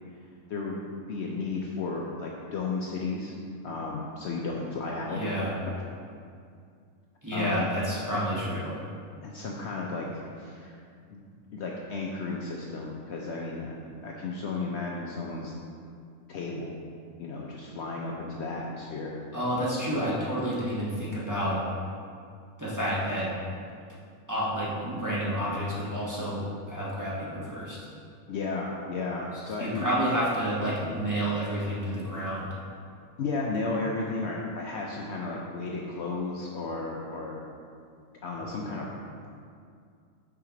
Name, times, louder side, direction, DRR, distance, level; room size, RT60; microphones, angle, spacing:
voice 1, 0.5-3.4 3.6-5.2 7.3-7.7 9.2-10.8 11.1-11.2 11.5-13.7 14.0-15.5 16.3-16.8 17.2-19.2 28.3-29.9 33.2-37.5 38.2-38.9, left 3 dB, 65° left, -2 dB, 0.7 m, -33 dB
voice 2, 5.1-5.6 7.2-8.7 19.3-21.6 22.6-23.3 24.3-27.8 29.6-32.5, equal, 15° right, -8 dB, 1.1 m, -29 dB
5.9 x 4.9 x 3.8 m, 2.3 s
omnidirectional pair, 1.4 m